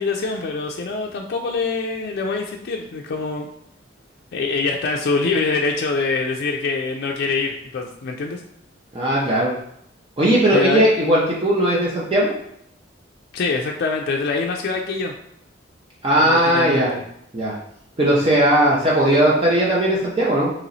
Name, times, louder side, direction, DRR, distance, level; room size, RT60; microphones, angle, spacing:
voice 1, 0.0-3.5 4.3-8.4 10.5-10.9 13.3-15.1 16.2-17.0, left 4 dB, 55° left, 1 dB, 0.4 m, -24 dB
voice 2, 8.9-9.5 10.2-12.3 16.0-16.9 17.3-17.5 18.0-20.5, right 1 dB, 30° right, -6 dB, 0.6 m, -18 dB
3.0 x 3.0 x 3.9 m, 0.74 s
head